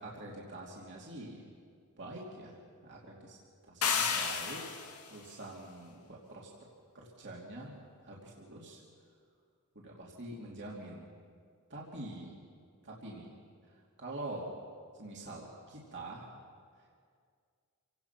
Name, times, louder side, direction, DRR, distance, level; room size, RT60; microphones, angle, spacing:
voice 1, 0.0-1.5 2.0-2.6 2.8-3.4 3.6-4.6 5.1-6.5 6.9-8.8 9.8-11.1 11.7-12.4 12.8-13.3 14.0-14.5 15.0-16.2, right 1 dB, 55° right, -3 dB, 2.9 m, -45 dB
sound 1, 3.8-5.1, left 6 dB, 90° left, 2.0 m, -32 dB
28.0 x 17.5 x 6.0 m, 2.1 s
head